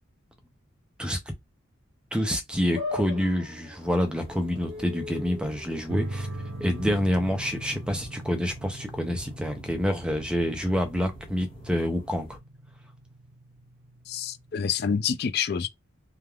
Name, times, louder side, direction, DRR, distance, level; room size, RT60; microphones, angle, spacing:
voice 1, 2.1-6.3 6.6-12.3, equal, 5° right, 0.5 m, -27 dB
sound 1, 2.7-9.2, left 3 dB, 25° right, 1.2 m, -41 dB
sound 2, 3.8-12.4, equal, 25° left, 1.3 m, -49 dB
sound 3, 5.9-14.9, right 1 dB, 70° right, 0.7 m, -41 dB
voice 2, 14.1-15.7, left 6 dB, 50° left, 0.3 m, -27 dB
3.3 x 2.4 x 2.3 m
head